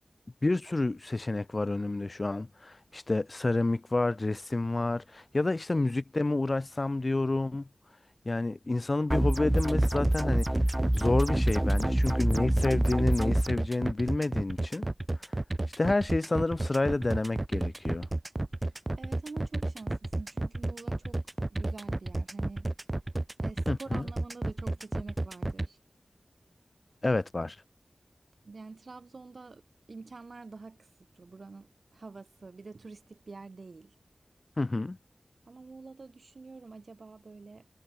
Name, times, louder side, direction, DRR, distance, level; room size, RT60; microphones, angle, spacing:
voice 1, 0.4-7.7 8.3-10.5 10.9-14.9 15.8-18.1 23.7-24.0 27.0-27.6 34.6-35.0, left 2 dB, 45° left, 0.4 m, -29 dB
sound 1, 9.1-13.5, right 1 dB, 15° right, 0.5 m, -26 dB
sound 2, 9.5-25.7, right 2 dB, 30° right, 0.9 m, -32 dB
voice 2, 19.0-21.2 21.5-22.7 23.4-25.8 28.5-34.0 35.5-37.7, right 3 dB, 75° right, 7.2 m, -47 dB
wide cardioid pair, 75°, 0 cm